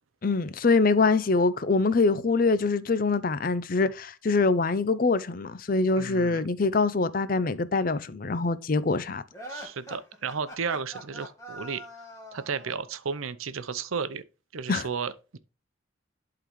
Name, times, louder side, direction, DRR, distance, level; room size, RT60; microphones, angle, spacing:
voice 1, 0.2-9.2 14.7-14.9, left 3 dB, 45° left, 0.5 m, -24 dB
voice 2, 6.0-6.5 9.5-11.8 12.3-14.2 14.5-15.4, right 6 dB, 90° right, 0.7 m, -33 dB
sound 1, 9.3-12.9, equal, 15° left, 1.9 m, -43 dB
11.5 x 3.9 x 3.0 m
head